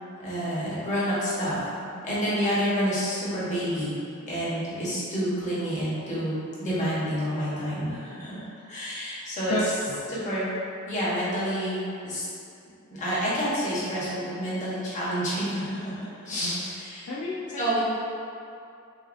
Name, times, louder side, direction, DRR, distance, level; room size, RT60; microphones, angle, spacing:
voice 1, 0.2-1.6 2.0-3.9 4.3-9.5 10.1-10.5 10.9-11.8 12.0-12.2 12.9-17.1 17.6-17.8, equal, 35° left, -9 dB, 1.1 m, -29 dB
voice 2, 17.1-17.8, left 2 dB, 75° left, -6 dB, 0.5 m, -31 dB
6.4 x 2.3 x 2.6 m, 2.5 s
head